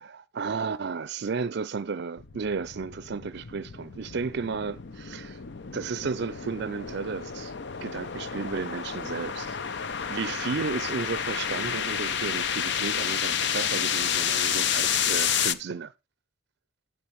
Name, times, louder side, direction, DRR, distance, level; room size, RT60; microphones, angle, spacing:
voice 1, 0.0-5.4 5.7-7.5 7.8-15.9, right 5 dB, 55° right, 0.5 m, -33 dB
sound 1, 2.2-15.5, left 8 dB, 60° left, 0.7 m, -30 dB
12.5 x 8.7 x 3.1 m
head